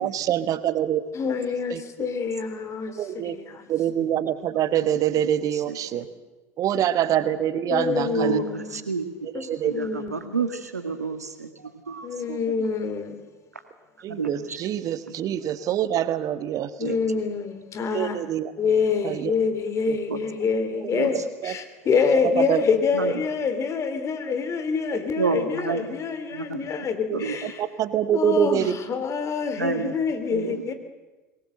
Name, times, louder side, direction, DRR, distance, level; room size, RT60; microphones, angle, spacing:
voice 1, 0.0-1.0 1.7-1.8 3.0-3.3 3.7-6.0 6.6-8.4 9.3-9.7 12.3-12.4 14.0-17.0 17.9-18.5 19.0-19.3 19.9-20.0 20.9-21.0 21.4-21.5 22.4-22.6 27.1-28.7 30.5-30.6, right 10 dB, 45° right, 14 dB, 1.3 m, -25 dB
voice 2, 1.1-3.6 7.7-8.8 9.3-10.3 12.0-13.2 16.8-18.2 18.6-27.6 28.1-30.7, left 5 dB, 35° left, 9 dB, 3.1 m, -26 dB
voice 3, 4.9-6.1 8.0-11.5 11.9-12.1 14.1-14.6 15.1-15.2 16.8-17.0 20.1-20.2 20.9-21.1 22.9-23.1 25.2-25.9 26.3-26.9 27.1-27.5 29.6-29.9 30.3-30.7, right 4 dB, 90° right, 9 dB, 1.9 m, -30 dB
22.5 x 20.0 x 7.8 m, 1.2 s
figure-of-eight pair, 75°, 8 cm